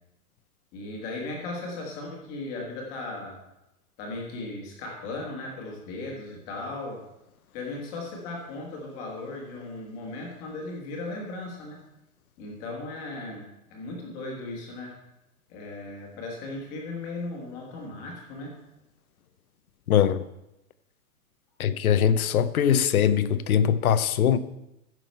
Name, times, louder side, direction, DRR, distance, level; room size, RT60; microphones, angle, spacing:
voice 1, 0.7-3.4 4.0-7.0 7.5-11.8 12.4-15.0 15.5-18.6, left 2 dB, 15° left, 1.4 m, -37 dB
voice 2, 19.9-20.2 21.6-24.4, left 9 dB, 65° left, 0.8 m, -21 dB
15.0 x 6.1 x 4.4 m
hypercardioid pair, 180°, 47 cm